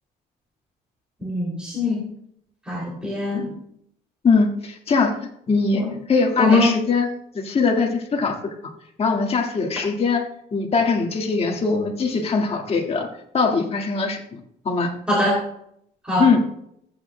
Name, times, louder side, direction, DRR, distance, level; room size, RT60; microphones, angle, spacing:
voice 1, 1.2-2.0 2.7-3.5 5.7-5.9 6.4-6.7 15.1-15.4 16.0-16.3, left 2 dB, 5° right, -5 dB, 2.8 m, -21 dB
voice 2, 4.2-5.2 5.5-5.8 6.1-7.1 7.3-8.5 9.0-10.2 10.5-13.1 13.3-14.4 14.7-15.0 16.2-16.4, left 4 dB, 35° left, 2 dB, 1.7 m, -21 dB
15.0 x 8.6 x 2.2 m, 0.74 s
cardioid pair, 110°, 17 cm